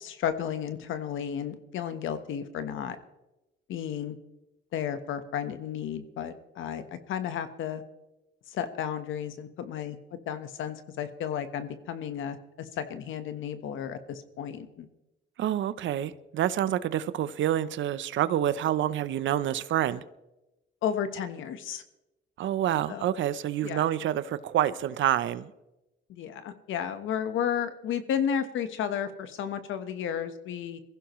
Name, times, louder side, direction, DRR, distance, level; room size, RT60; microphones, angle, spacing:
voice 1, 0.0-3.0 3.7-4.2 4.7-7.8 8.5-10.0 10.3-14.9 20.8-21.8 22.9-23.0 23.6-23.8 26.1-30.8, left 8 dB, 80° left, 1.3 m, -33 dB
voice 2, 15.4-20.0 22.4-25.5, right 11 dB, 70° right, 0.8 m, -27 dB
22.5 x 15.5 x 3.2 m
cardioid pair, 90°, 20 cm